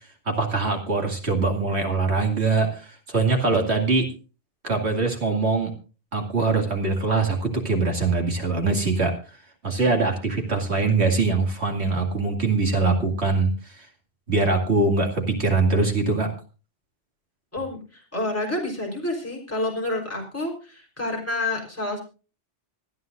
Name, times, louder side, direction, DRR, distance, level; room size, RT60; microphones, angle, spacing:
voice 1, 0.3-4.1 4.6-5.7 6.1-9.1 9.6-13.9 14.3-16.3, right 3 dB, 70° right, 2 dB, 2.6 m, -23 dB
voice 2, 17.5-22.0, left 2 dB, 10° left, -1 dB, 3.8 m, -29 dB
26.0 x 9.4 x 2.5 m, 0.34 s
omnidirectional pair, 1.2 m